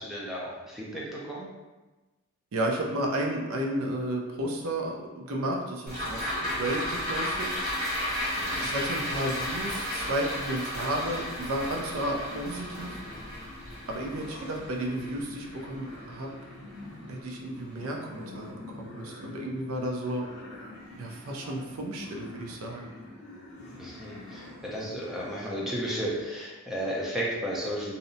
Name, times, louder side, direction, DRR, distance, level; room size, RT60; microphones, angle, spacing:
voice 1, 0.0-1.5 8.4-8.7 23.8-27.9, equal, ahead, -5 dB, 0.4 m, -34 dB
voice 2, 2.5-7.5 8.5-13.0 13.9-16.3 17.1-20.2 21.0-22.8, right 1 dB, 75° right, 1 dB, 0.4 m, -32 dB
sound 1, 5.9-16.4 16.7-16.8, left 1 dB, 35° right, 1.4 m, -33 dB
sound 2, 10.9-26.2, left 1 dB, 55° left, 0.6 m, -46 dB
2.7 x 2.1 x 2.6 m, 1.2 s
head